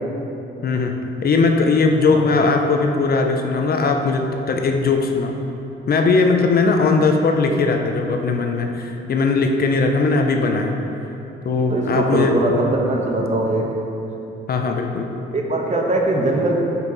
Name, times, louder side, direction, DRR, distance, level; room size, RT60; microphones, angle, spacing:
voice 1, 0.6-0.9 1.2-5.3 5.9-10.8 11.4-12.4 14.5-15.1, left 4 dB, 50° left, 4 dB, 0.7 m, -19 dB
voice 2, 11.7-13.7 15.3-16.5, right 1 dB, 35° right, 0 dB, 1.2 m, -21 dB
9.3 x 5.6 x 4.1 m, 2.9 s
cardioid pair, 90°, 20 cm